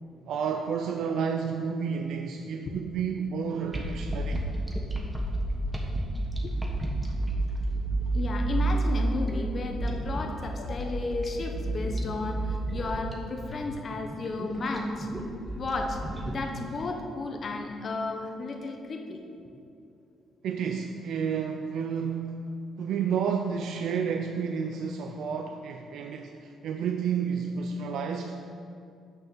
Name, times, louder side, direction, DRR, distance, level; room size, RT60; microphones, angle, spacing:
voice 1, 0.3-4.5 20.4-28.4, right 6 dB, 75° right, 5 dB, 0.4 m, -31 dB
sound 1, 3.7-16.8, right 2 dB, 15° right, 1.2 m, -31 dB
voice 2, 8.1-15.1 15.6-19.2, left 3 dB, 45° left, 3 dB, 0.9 m, -33 dB
6.4 x 6.2 x 6.4 m, 2.6 s
cardioid pair, 90°, 0 cm